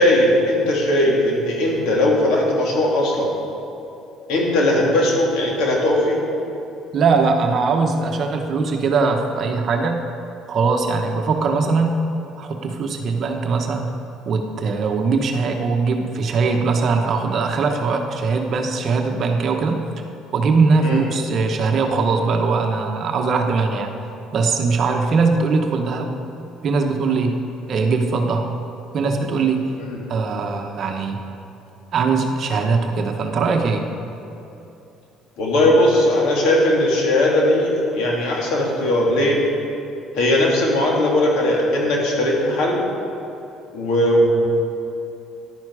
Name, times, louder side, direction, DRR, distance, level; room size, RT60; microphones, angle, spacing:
voice 1, 0.0-3.3 4.3-6.2 20.8-21.0 29.8-30.0 35.4-39.4 40.1-42.8 43.7-44.3, left 1 dB, 75° left, -2 dB, 2.9 m, -18 dB
voice 2, 6.9-10.0 10.5-12.0 12.4-13.9 14.2-19.9 20.3-23.9 24.3-26.1 26.6-27.4 27.7-28.5 28.9-29.7 30.1-31.2 31.9-33.9, right 4 dB, 45° right, 3 dB, 1.1 m, -20 dB
14.0 x 11.0 x 4.9 m, 2.8 s
cardioid pair, 130°, 0 cm